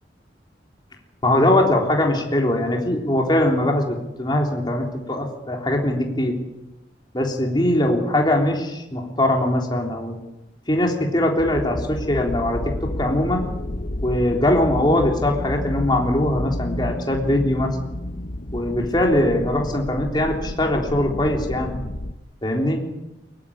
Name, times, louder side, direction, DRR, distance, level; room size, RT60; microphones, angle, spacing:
voice 1, 1.2-6.4 7.1-10.2 10.7-13.5 14.0-17.7 18.5-21.7 22.4-22.8, left 1 dB, 25° left, 1 dB, 3.6 m, -21 dB
sound 1, 11.4-22.1, left 1 dB, 50° left, 1.1 m, -31 dB
22.0 x 19.0 x 8.7 m, 0.97 s
head